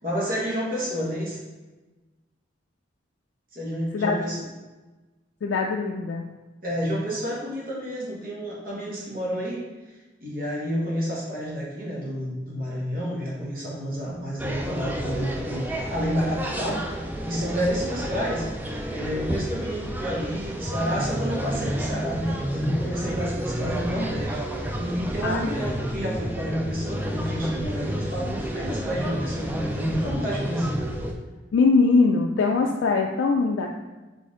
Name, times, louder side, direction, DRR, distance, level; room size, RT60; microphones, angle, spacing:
voice 1, 0.0-1.4 3.5-4.5 6.6-9.6 10.2-16.8 17.2-18.4 18.9-24.4 24.7-30.8, equal, 45° right, -5 dB, 1.3 m, -30 dB
voice 2, 5.4-6.3 25.2-25.6 31.5-33.7, left 4 dB, 75° left, 1 dB, 0.3 m, -22 dB
sound 1, 14.4-31.1, equal, 10° right, 0.3 m, -30 dB
4.2 x 3.4 x 3.7 m, 1.2 s
head